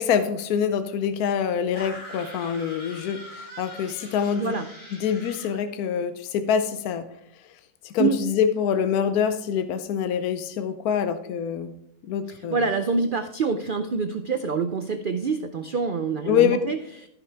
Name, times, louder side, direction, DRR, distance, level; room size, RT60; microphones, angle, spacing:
voice 1, 0.0-4.5 5.0-7.1 7.8-11.7 12.1-12.6 16.3-16.6, left 8 dB, 75° left, 9 dB, 1.1 m, -25 dB
sound 1, 1.7-5.6, equal, 40° left, 2.9 m, -42 dB
voice 2, 12.5-16.8, right 5 dB, 80° right, 8 dB, 0.4 m, -26 dB
15.0 x 5.9 x 3.4 m, 0.77 s
omnidirectional pair, 1.6 m